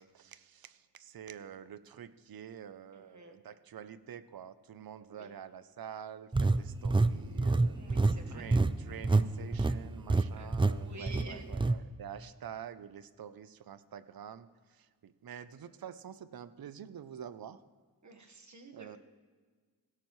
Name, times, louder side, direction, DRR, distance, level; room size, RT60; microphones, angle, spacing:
voice 1, 0.0-7.8 8.3-14.5 14.8-17.6 18.7-19.0, right 8 dB, 70° right, 14 dB, 0.6 m, -47 dB
voice 2, 2.9-3.4 5.1-5.3 7.7-8.5 10.3-11.5 18.0-19.0, right 2 dB, 50° right, 3 dB, 1.4 m, -50 dB
sound 1, 6.3-9.3 9.5-9.8 10.1-10.2 10.5-10.7 11.1-11.8, right 3 dB, 15° right, 0.3 m, -26 dB
16.0 x 13.5 x 3.1 m, 1.5 s
wide cardioid pair, 80°, 37 cm